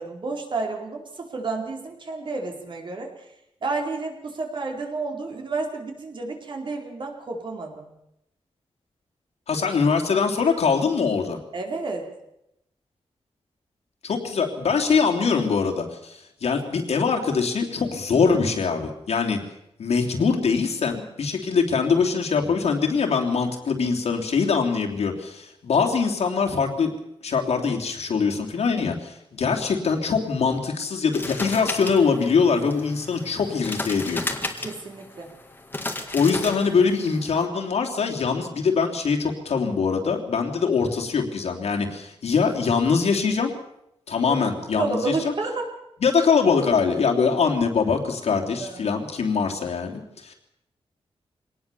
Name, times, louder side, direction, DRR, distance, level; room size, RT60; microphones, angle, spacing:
voice 1, 0.0-3.1 3.6-7.9 11.5-12.1 34.6-35.3 44.3-44.4 44.8-45.7 48.6-48.9, right 3 dB, 50° right, 2 dB, 4.3 m, -30 dB
voice 2, 9.5-11.4 14.0-19.4 19.8-26.9 27.2-34.2 36.1-43.5 44.1-45.3 46.0-50.3, left 5 dB, 85° left, 2 dB, 3.3 m, -23 dB
sound 1, 31.1-37.4, left 2 dB, 20° left, 1.9 m, -34 dB
24.0 x 18.5 x 7.0 m, 0.82 s
wide cardioid pair, 170°, 11 cm